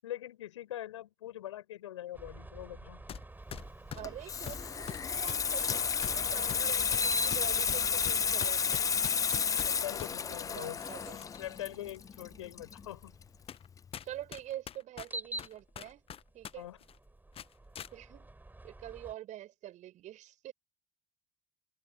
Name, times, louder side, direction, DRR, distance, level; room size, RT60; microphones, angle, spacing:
voice 1, 0.0-3.0 6.4-6.5 9.6-10.8 11.4-13.2 16.5-16.8, left 13 dB, 75° left, 7.5 m, -43 dB
sound 1, 2.1-13.5 15.0-19.1, right 2 dB, 10° right, 5.5 m, -47 dB
sound 2, 3.1-3.2 3.5-10.1 10.8-11.5 11.9-12.0 12.8-12.9 13.5-13.7 13.9-16.5 16.8-17.0 17.3-17.9, left 9 dB, 40° left, 1.1 m, -44 dB
Water tap faucet / Sink (filling or washing), 3.9-13.2 13.5-13.8, left 7 dB, 20° left, 0.4 m, -32 dB
voice 2, 4.0-8.9 10.5-11.2 14.0-16.0 16.3-16.7 17.9-18.3 18.6-20.5, right 13 dB, 50° right, 6.7 m, -45 dB
figure-of-eight pair, 60°, 15 cm